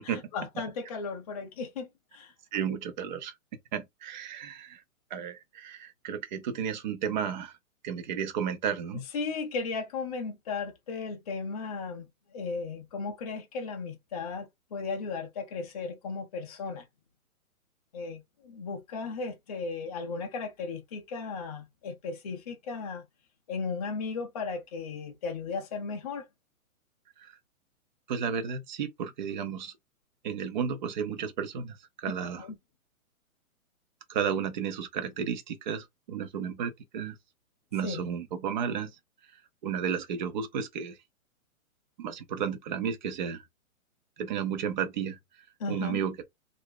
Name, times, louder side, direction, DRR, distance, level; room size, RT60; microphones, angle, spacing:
voice 1, 0.0-2.3 9.1-12.1 12.3-16.8 17.9-23.1 23.5-26.3 32.4-32.5 37.8-38.1 45.6-46.0, left 4 dB, 30° left, 0.4 m, -36 dB
voice 2, 2.5-3.3 3.7-4.8 5.1-7.5 7.8-9.0 27.2-27.4 28.1-29.7 30.2-32.5 34.1-37.2 37.7-38.9 39.6-41.0 42.0-43.4 44.2-45.2 45.7-46.2, right 7 dB, 35° right, 0.5 m, -33 dB
2.5 x 2.1 x 3.4 m
hypercardioid pair, 135°, 43 cm